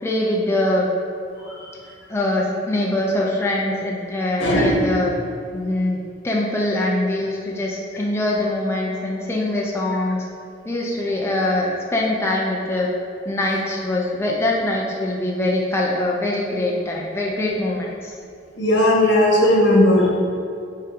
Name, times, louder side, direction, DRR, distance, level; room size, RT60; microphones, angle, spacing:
voice 1, 0.0-0.9 2.1-5.1 5.5-6.0 6.2-10.2 10.6-12.9 13.3-18.1, left 1 dB, 15° left, -3 dB, 0.5 m, -23 dB
voice 2, 4.4-4.8 18.6-20.1, left 1 dB, 75° left, -3 dB, 1.4 m, -16 dB
5.6 x 3.7 x 5.1 m, 2.4 s
head